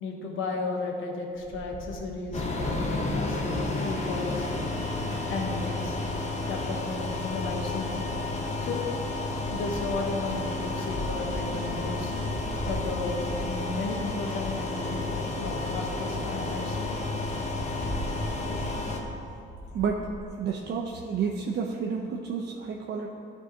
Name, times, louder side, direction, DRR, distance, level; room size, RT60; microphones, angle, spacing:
voice 1, 0.0-4.4 5.3-6.0 6.5-8.1 8.6-8.8 9.5-12.1 12.6-16.9, left 3 dB, 80° left, 1 dB, 1.1 m, -34 dB
Wind, 1.4-5.0 6.1-6.6 7.3-14.2 14.9-15.0 15.2-15.3 15.6-15.7 16.0-16.1 16.3-16.5 16.9-20.2, equal, 20° right, 0.8 m, -41 dB
sound 1, 2.3-19.0, left 2 dB, 35° left, 1.0 m, -31 dB
voice 2, 20.4-23.1, right 6 dB, 60° right, -1 dB, 0.6 m, -30 dB
12.0 x 4.7 x 2.9 m, 2.4 s
cardioid pair, 90°, 20 cm